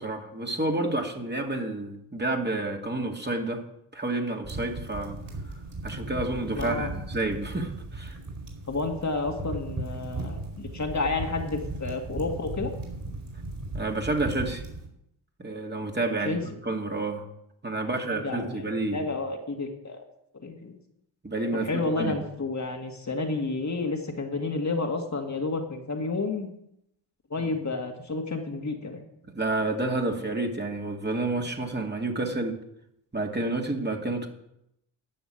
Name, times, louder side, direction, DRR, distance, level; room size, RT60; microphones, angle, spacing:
voice 1, 0.0-3.6 3.9-5.2 5.8-8.2 13.7-14.6 15.4-16.4 16.6-17.2 17.6-19.0 21.2-22.2 29.3-32.6 33.1-34.3, right 2 dB, 20° right, 2 dB, 2.5 m, -29 dB
sound 1, 4.4-14.9, right 2 dB, 45° right, 4.6 m, -37 dB
voice 2, 6.5-6.9 8.7-12.7 16.3-16.4 17.8-18.6 18.9-20.0 20.4-20.8 21.6-26.5 27.3-29.0, left 3 dB, 35° left, 2 dB, 2.2 m, -30 dB
11.5 x 6.2 x 8.9 m, 0.79 s
supercardioid pair, 55°, 48 cm